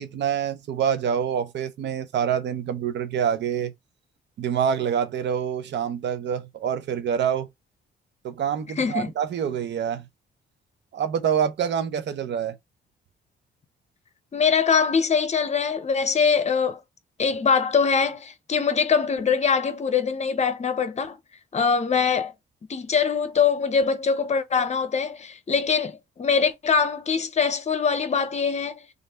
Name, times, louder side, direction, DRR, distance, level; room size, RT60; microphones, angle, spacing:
voice 1, 0.0-3.7 4.4-7.5 8.2-10.0 10.9-12.6, right 8 dB, 65° right, 0.8 m, -26 dB
voice 2, 8.8-9.1 14.3-16.8 17.2-21.2 21.5-22.3 22.7-28.8, left 6 dB, 35° left, 0.8 m, -23 dB
3.2 x 2.6 x 4.3 m
cardioid pair, 90°, 20 cm